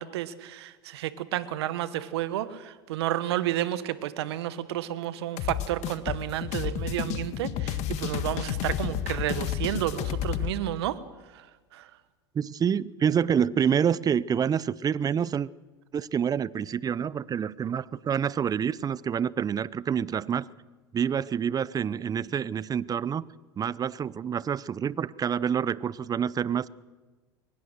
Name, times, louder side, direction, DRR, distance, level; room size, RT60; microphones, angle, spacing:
voice 1, 0.0-11.0 11.3-11.5 11.7-11.9, right 13 dB, 75° right, 1.3 m, -31 dB
sound 1, 5.4-10.5, left 10 dB, 55° left, 1.6 m, -31 dB
voice 2, 12.3-15.5 15.9-20.5 20.9-23.3 23.6-26.7, right 8 dB, 25° right, 0.6 m, -27 dB
22.5 x 20.0 x 6.5 m
hypercardioid pair, 85°, 14 cm